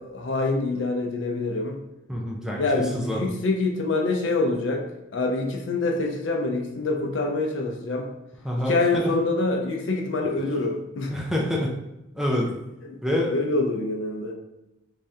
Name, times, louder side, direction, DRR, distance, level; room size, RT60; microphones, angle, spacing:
voice 1, 0.0-1.8 2.6-4.8 5.1-8.1 8.7-11.1 12.8-13.0 13.3-14.3, left 2 dB, 60° left, 3 dB, 0.5 m, -25 dB
voice 2, 2.1-3.2 8.4-9.1 11.1-11.7 12.2-12.5 13.0-13.3, left 1 dB, 5° right, -2 dB, 0.5 m, -26 dB
3.1 x 2.7 x 3.5 m, 0.92 s
head